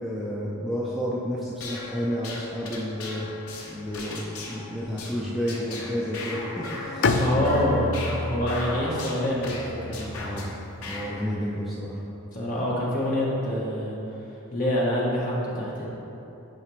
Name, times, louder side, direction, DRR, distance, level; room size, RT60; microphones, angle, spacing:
voice 1, 0.0-3.3 3.6-7.2 10.2-10.5 10.9-12.0, equal, ahead, -7 dB, 0.5 m, -31 dB
sound 1, 1.5-10.5 10.8-11.1, left 2 dB, 75° left, 1.0 m, -38 dB
Bowed string instrument, 7.0-11.0, left 3 dB, 55° left, 0.3 m, -29 dB
voice 2, 7.1-7.9 8.3-10.2 12.3-14.0 14.5-15.9, equal, 35° left, -5 dB, 1.3 m, -26 dB
9.0 x 4.9 x 3.2 m, 3.0 s
head